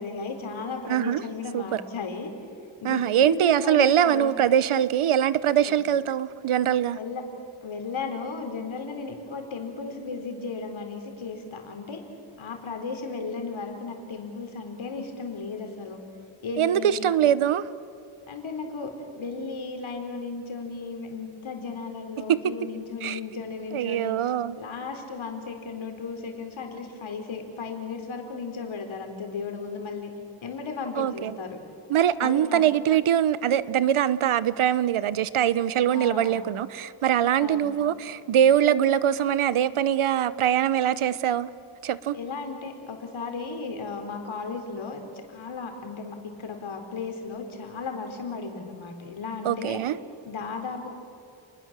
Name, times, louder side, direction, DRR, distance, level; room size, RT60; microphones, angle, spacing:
voice 1, 0.0-2.3 2.8-4.3 6.9-7.2 7.6-12.0 12.4-16.0 16.4-17.1 18.3-24.2 24.6-30.1 30.4-31.6 32.2-32.6 35.9-36.4 37.4-37.7 42.1-45.0 45.3-49.8 50.2-50.9, left 4 dB, 70° left, 4 dB, 4.2 m, -35 dB
voice 2, 0.9-1.2 1.5-1.8 2.8-7.0 16.6-17.7 23.0-23.2 23.7-24.6 30.9-31.4 31.9-41.5 41.8-42.2 49.4-50.0, right 10 dB, 85° right, 16 dB, 1.0 m, -23 dB
29.5 x 21.0 x 7.5 m, 2.5 s
wide cardioid pair, 160°, 49 cm